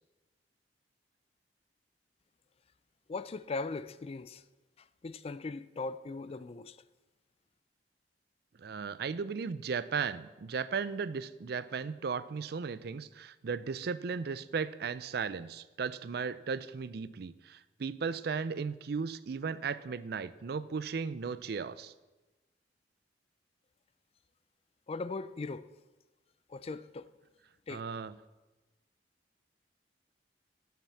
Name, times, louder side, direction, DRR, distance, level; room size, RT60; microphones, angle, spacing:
voice 1, 3.1-4.4 4.8-6.8 24.9-25.7 26.5-27.1 27.7-27.8, left 3 dB, 35° left, 0.4 m, -39 dB
voice 2, 8.6-21.9 27.7-28.1, right 5 dB, 60° right, 0.4 m, -36 dB
11.5 x 5.9 x 7.1 m
head